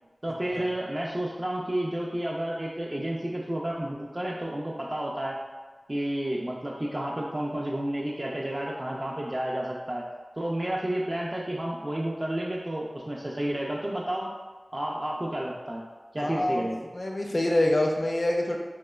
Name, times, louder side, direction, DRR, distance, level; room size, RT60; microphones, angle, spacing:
voice 1, 0.2-5.4 5.9-10.0 10.4-14.3 14.7-15.8 16.1-16.9, right 1 dB, 35° right, -4 dB, 0.3 m, -31 dB
voice 2, 16.2-16.7 16.9-18.6, left 1 dB, 55° left, 1 dB, 0.3 m, -25 dB
3.0 x 2.2 x 2.2 m, 1.3 s
wide cardioid pair, 60°, 0 cm